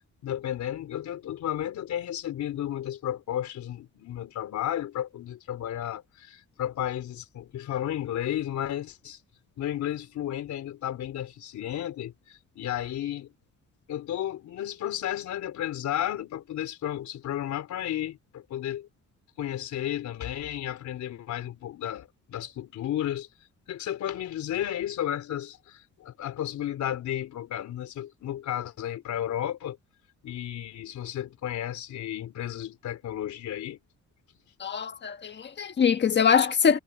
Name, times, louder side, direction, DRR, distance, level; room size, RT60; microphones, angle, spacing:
voice 1, 0.2-9.2 9.6-13.3 13.9-18.9 19.4-23.3 23.7-29.8 30.2-33.8, left 11 dB, 70° left, 3.9 m, -33 dB
voice 2, 34.6-36.8, left 7 dB, 35° left, 1.4 m, -23 dB
cardioid pair, 170°, 30 cm